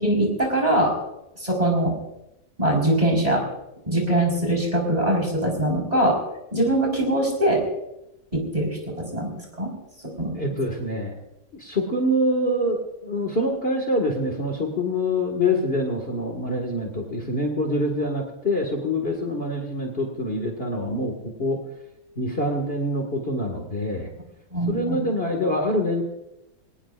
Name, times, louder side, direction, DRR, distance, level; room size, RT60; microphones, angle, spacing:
voice 1, 0.0-0.9 1.4-1.9 2.6-3.4 3.9-6.2 6.5-7.6 8.3-9.7 10.2-10.3 24.5-25.0, right 1 dB, 20° right, 0 dB, 4.7 m, -22 dB
voice 2, 10.4-11.1 11.5-21.1 21.4-21.6 22.2-24.1 24.7-26.0, left 1 dB, 35° left, 2 dB, 2.1 m, -25 dB
23.5 x 18.5 x 2.5 m, 0.88 s
omnidirectional pair, 1.8 m